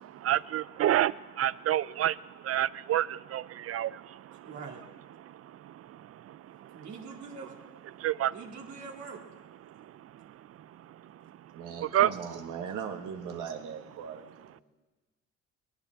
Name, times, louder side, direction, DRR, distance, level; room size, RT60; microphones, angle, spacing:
voice 1, 0.0-4.5 5.2-6.9 8.0-8.4 9.8-9.9 11.8-12.1, right 12 dB, 50° right, 19 dB, 0.5 m, -30 dB
voice 2, 4.4-4.8 6.7-7.6 8.3-9.2, right 5 dB, 65° right, -1 dB, 2.4 m, -43 dB
voice 3, 11.5-14.6, right 7 dB, 85° right, 4 dB, 1.8 m, -39 dB
21.0 x 18.0 x 3.6 m, 1.2 s
cardioid pair, 90°, 30 cm